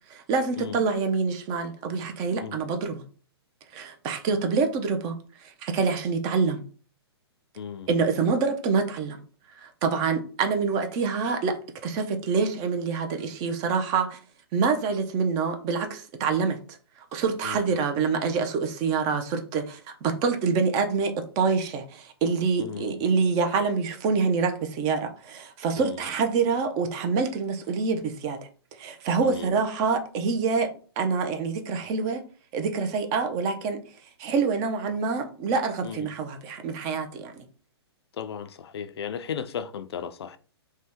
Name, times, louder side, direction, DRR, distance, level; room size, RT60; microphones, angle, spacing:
voice 1, 0.1-3.0 3.7-6.6 7.9-9.2 9.6-11.6 11.8-14.2 14.5-16.8 17.1-28.4 28.8-30.7 31.0-32.2 32.5-33.8 34.2-37.3, right 5 dB, 25° right, 0.5 m, -26 dB
voice 2, 7.6-7.9 17.4-17.7 22.6-22.9 25.8-26.0 29.2-29.5 35.8-36.1 38.2-40.4, left 7 dB, 70° left, 0.4 m, -35 dB
2.7 x 2.1 x 3.5 m
hypercardioid pair, 135°, 14 cm